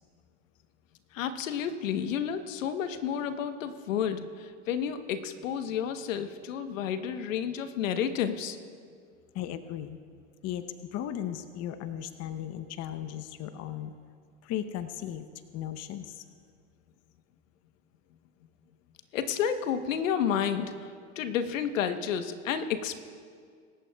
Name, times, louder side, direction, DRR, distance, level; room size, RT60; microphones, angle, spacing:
voice 1, 1.1-8.6 19.1-20.9 21.2-23.0, left 8 dB, 75° left, 9 dB, 1.1 m, -31 dB
voice 2, 9.3-10.0 10.4-13.9 14.4-15.3 15.5-16.3, left 11 dB, 40° left, 11 dB, 0.8 m, -36 dB
27.0 x 14.0 x 2.3 m, 2.1 s
hypercardioid pair, 90°, 39 cm